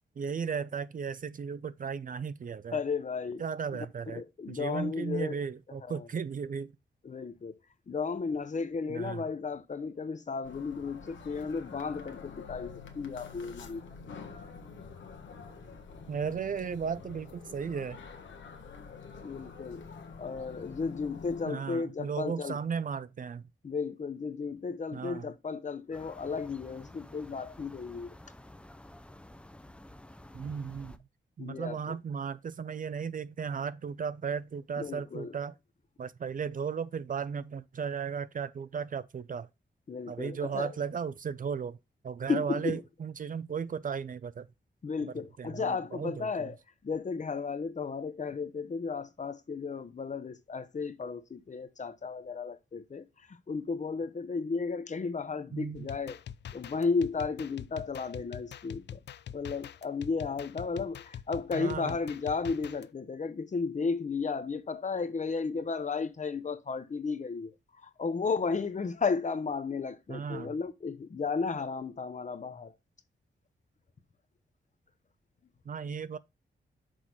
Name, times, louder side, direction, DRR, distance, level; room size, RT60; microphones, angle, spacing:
voice 1, 0.2-2.8 3.4-4.2 4.5-6.7 8.9-9.2 16.1-18.0 21.4-23.4 24.9-25.2 30.3-31.0 31.4-35.5 36.0-39.5 40.1-41.8 42.0-44.5 45.0-46.5 55.5-55.9 61.5-62.0 70.1-70.5 75.7-76.2, right 6 dB, 45° right, 0.5 m, -35 dB
voice 2, 2.7-3.4 3.7-3.9 4.1-5.4 5.8-6.1 7.0-7.6 7.9-13.9 19.2-19.9 20.2-22.6 23.6-28.2 31.4-31.9 34.8-35.3 39.9-40.7 42.3-42.8 44.8-46.6 46.8-56.2 56.5-59.0 59.3-72.7, left 4 dB, 40° left, 0.8 m, -34 dB
sound 1, 10.4-21.5, left 5 dB, 85° left, 1.2 m, -47 dB
sound 2, 25.9-31.0, left 1 dB, 5° left, 0.5 m, -51 dB
sound 3, 55.7-62.9, left 9 dB, 70° left, 0.4 m, -44 dB
6.3 x 4.0 x 4.5 m
cardioid pair, 90°, 19 cm